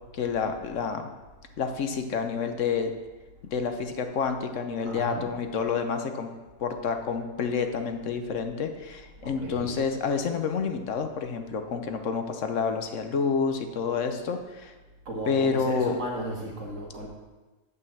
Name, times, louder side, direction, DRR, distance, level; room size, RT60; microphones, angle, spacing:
voice 1, 0.1-1.0 1.6-2.9 3.5-6.3 6.6-14.7 15.2-16.0, left 5 dB, 70° left, 6 dB, 1.2 m, -29 dB
voice 2, 4.8-5.3 9.2-9.8 15.1-17.1, right 1 dB, 75° right, 0 dB, 2.0 m, -35 dB
8.3 x 5.5 x 7.0 m, 1.2 s
omnidirectional pair, 1.3 m